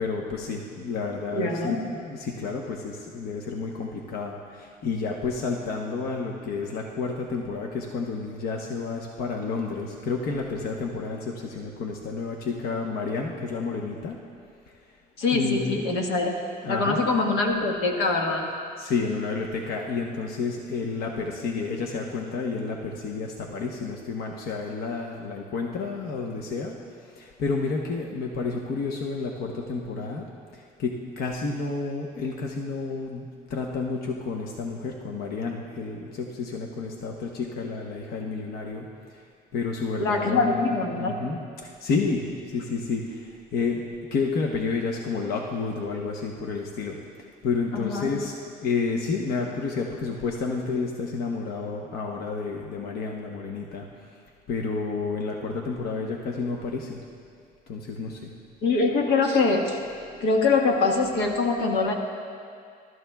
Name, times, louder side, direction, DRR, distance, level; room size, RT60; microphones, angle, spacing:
voice 1, 0.0-14.2 15.3-15.8 16.6-17.0 17.4-17.5 18.8-30.3 30.5-39.2 39.5-43.8 44.1-47.0 47.4-53.9 54.5-57.0 57.7-58.3 59.8-59.9, left 4 dB, 65° left, 0 dB, 1.0 m, -30 dB
voice 2, 1.3-1.8 15.2-16.3 16.7-18.5 40.0-41.1 47.7-48.1 58.6-59.8 60.2-61.9, left 3 dB, 90° left, 1 dB, 1.5 m, -23 dB
23.0 x 12.5 x 2.3 m, 2.2 s
cardioid pair, 110°, 17 cm